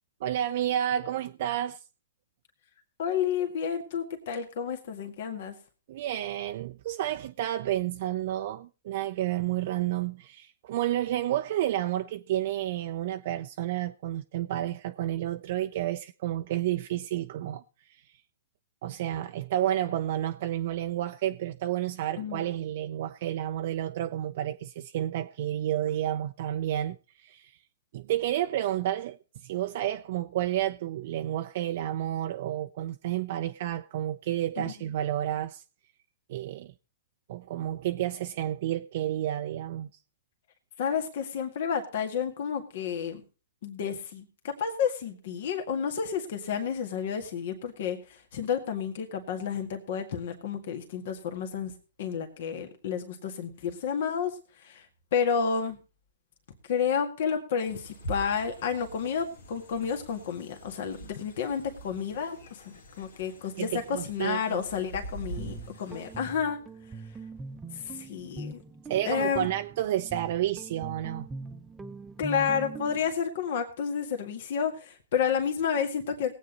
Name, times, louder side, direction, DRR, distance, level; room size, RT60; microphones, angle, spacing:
voice 1, 0.2-1.8 5.9-17.6 17.9-18.0 18.8-27.5 27.9-29.2 29.4-35.6 36.3-36.7 37.3-39.9 63.6-64.6 68.9-71.3, right 12 dB, 55° right, 0.5 m, -30 dB
voice 2, 3.0-5.5 22.2-22.4 34.6-34.7 40.8-43.2 43.6-51.7 52.0-54.9 55.1-55.8 56.7-66.6 67.7-68.6 69.1-69.5 72.2-76.4, left 7 dB, 60° left, 1.8 m, -31 dB
sound 1, 57.6-66.3, right 2 dB, 80° left, 2.0 m, -44 dB
Guitar, 65.1-73.1, right 2 dB, 15° right, 0.8 m, -42 dB
18.5 x 8.4 x 4.0 m
hypercardioid pair, 125°, 0 cm